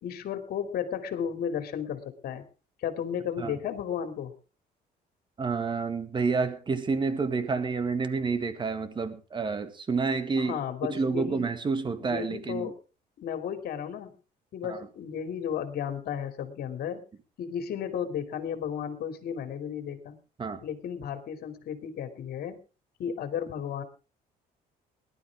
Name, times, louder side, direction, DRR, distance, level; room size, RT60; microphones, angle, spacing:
voice 1, 0.0-2.4 2.8-4.3 10.4-11.5 12.0-12.8 13.2-14.1 14.5-17.0 17.4-20.2 20.6-22.6 23.0-23.8, left 8 dB, 65° left, 2.9 m, -34 dB
voice 2, 5.4-10.6 10.9-12.7 14.7-14.9 20.4-20.6, right 4 dB, 30° right, 1.9 m, -29 dB
20.0 x 12.0 x 3.6 m
cardioid pair, 110°, 17 cm